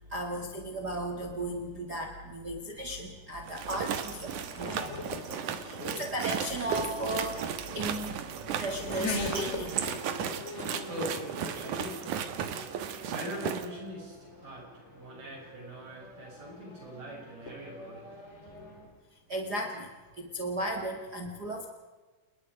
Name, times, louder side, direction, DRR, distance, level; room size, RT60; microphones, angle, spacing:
voice 1, 0.1-4.8 5.5-8.1 8.6-9.8 10.7-10.8 19.3-19.9 20.2-21.6, right 1 dB, 65° right, 2 dB, 0.9 m, -35 dB
Race car auto racing / Accelerating revving vroom, 2.6-18.9, left 2 dB, 25° left, 1.5 m, -42 dB
sound 1, 3.4-13.7, right 8 dB, 80° right, 1.8 m, -35 dB
voice 2, 4.2-6.0 10.7-19.0, equal, 40° right, -2 dB, 9.2 m, -43 dB
29.0 x 21.0 x 5.1 m, 1.3 s
omnidirectional pair, 5.8 m